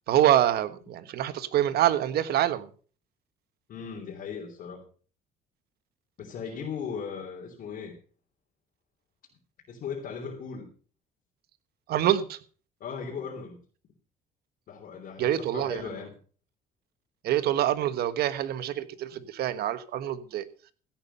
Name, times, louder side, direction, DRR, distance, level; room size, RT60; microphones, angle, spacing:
voice 1, 0.1-2.7 11.9-12.4 15.2-15.8 17.2-20.4, right 12 dB, 70° right, 1.4 m, -25 dB
voice 2, 3.7-4.9 6.2-8.0 9.7-10.7 12.8-13.6 14.7-16.2, left 6 dB, 60° left, 3.4 m, -37 dB
16.0 x 9.0 x 5.4 m
cardioid pair, 110°, 17 cm